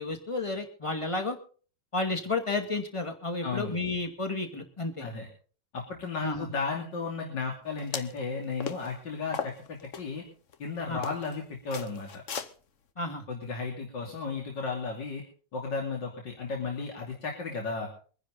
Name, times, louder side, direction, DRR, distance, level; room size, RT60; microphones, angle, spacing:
voice 1, 0.0-1.4 1.9-5.1 6.2-6.5 10.9-11.0 13.0-13.3, left 3 dB, 15° left, 5 dB, 2.1 m, -32 dB
voice 2, 3.4-3.8 5.0-5.3 5.7-10.2 10.6-12.2 13.3-15.2 15.5-17.9, left 4 dB, 85° left, 0 dB, 3.3 m, -34 dB
sound 1, 7.8-8.2 8.6-8.9 9.3-10.0 10.5-10.6 11.0-11.3 11.7-12.5, left 6 dB, 50° left, 1.2 m, -36 dB
24.0 x 10.0 x 4.1 m, 0.41 s
omnidirectional pair, 1.9 m